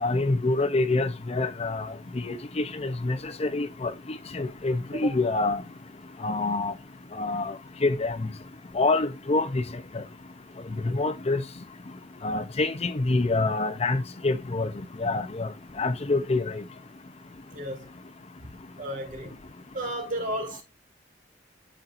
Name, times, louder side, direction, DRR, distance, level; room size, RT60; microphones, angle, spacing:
voice 1, 0.0-1.9 2.2-5.6 6.2-6.7 7.2-7.6 7.8-8.2 8.7-9.6 9.9-10.0 10.8-11.4 12.2-14.7 15.0-15.5 15.8-16.6, left 2 dB, 35° left, 0.6 m, -26 dB
voice 2, 18.8-19.3 19.7-20.6, right 1 dB, 45° right, 3.0 m, -33 dB
11.5 x 4.4 x 2.5 m
head